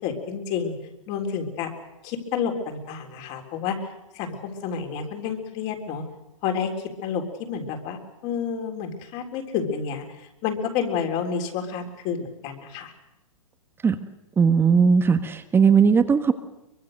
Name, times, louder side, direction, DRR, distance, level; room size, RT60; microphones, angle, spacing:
voice 1, 0.0-0.8 1.1-1.7 2.0-3.8 4.1-6.0 6.4-6.7 7.0-12.9, left 7 dB, 40° left, 4 dB, 3.8 m, -29 dB
voice 2, 14.4-16.3, right 6 dB, 15° right, 9 dB, 1.3 m, -18 dB
23.5 x 22.5 x 6.6 m, 0.94 s
hypercardioid pair, 130°, 17 cm